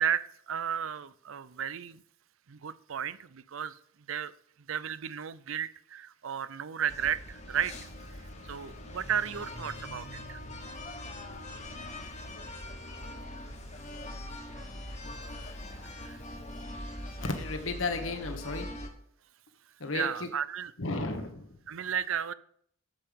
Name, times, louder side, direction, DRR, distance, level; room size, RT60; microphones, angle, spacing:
voice 1, 0.0-2.0 2.5-3.7 4.1-4.3 4.7-7.7 8.4-10.4 16.0-16.2 19.9-20.7 21.7-22.3, right 8 dB, 75° right, 16 dB, 0.6 m, -33 dB
sound 1, 6.9-18.9, left 1 dB, 35° left, 1.5 m, -42 dB
voice 2, 17.3-18.7 19.8-20.3 20.8-21.5, left 3 dB, 75° left, 5 dB, 1.4 m, -34 dB
8.9 x 7.7 x 5.3 m, 0.64 s
head